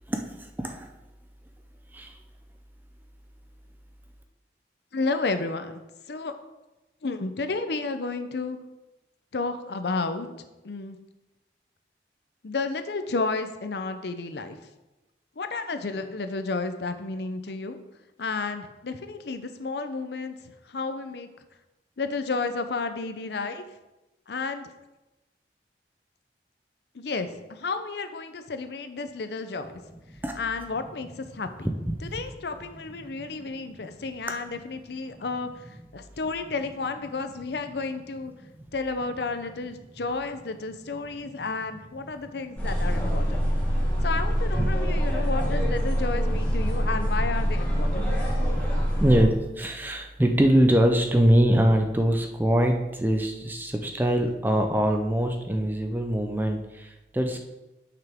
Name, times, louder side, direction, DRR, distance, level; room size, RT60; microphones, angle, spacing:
voice 1, 0.1-0.9 1.9-2.2 30.2-30.3 31.6-32.1 33.1-33.5 33.8-33.9 35.1-35.2 38.6-38.7 43.4-43.8 44.5-44.7 48.1-48.3 49.0-57.4, right 1 dB, 10° right, 4 dB, 0.6 m, -24 dB
voice 2, 4.9-5.8 6.1-6.3 7.0-8.6 9.3-10.3 10.6-11.0 12.4-14.6 15.4-17.8 18.2-20.4 20.7-21.3 22.0-23.6 24.3-24.7 26.9-29.8 30.4-31.7 32.1-35.5 35.9-38.3 38.7-43.4 44.0-48.1, left 3 dB, 70° left, 9 dB, 0.6 m, -31 dB
sound 1, 42.6-49.2, equal, 10° left, 1.9 m, -25 dB
9.0 x 5.8 x 3.6 m, 1.0 s
head